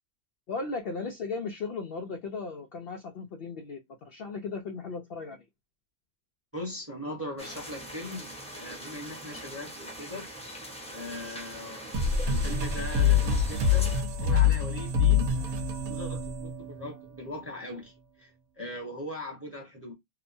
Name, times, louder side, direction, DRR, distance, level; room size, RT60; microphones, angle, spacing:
voice 1, 0.5-5.4, left 4 dB, 80° left, 0.5 m, -36 dB
voice 2, 6.5-10.3 10.9-19.9, left 1 dB, 10° right, 0.8 m, -40 dB
sound 1, 7.4-14.0, equal, 10° left, 0.3 m, -42 dB
sound 2, 11.9-17.2, left 6 dB, 75° right, 1.1 m, -25 dB
2.9 x 2.1 x 2.5 m
omnidirectional pair, 1.6 m